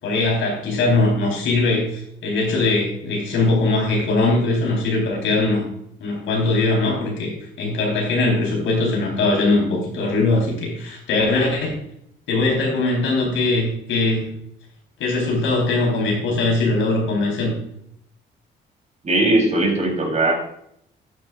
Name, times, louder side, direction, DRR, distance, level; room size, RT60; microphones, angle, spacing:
voice 1, 0.0-5.7 6.0-11.7 12.3-14.3 15.0-17.5, left 2 dB, 85° left, -1 dB, 4.3 m, -21 dB
voice 2, 19.0-20.3, right 2 dB, 35° right, 0 dB, 3.9 m, -19 dB
12.0 x 9.9 x 2.6 m, 0.71 s
cardioid pair, 90°, 20 cm